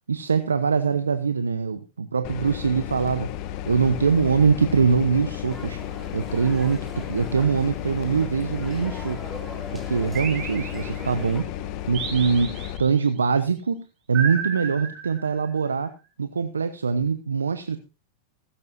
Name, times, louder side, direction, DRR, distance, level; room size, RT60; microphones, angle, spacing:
voice 1, 0.1-3.3 3.7-5.8 6.1-9.2 9.7-11.5 11.9-13.8 14.1-15.9 16.2-17.8, right 5 dB, 90° right, 11 dB, 0.9 m, -23 dB
sound 1, 2.2-12.8, left 11 dB, 50° left, 1.4 m, -33 dB
sound 2, 5.5-11.4, right 1 dB, 5° right, 3.8 m, -43 dB
sound 3, 10.1-11.3 11.9-13.1 14.1-15.6, right 6 dB, 35° right, 4.4 m, -33 dB
15.5 x 13.5 x 2.7 m, 0.27 s
hypercardioid pair, 100°, 0 cm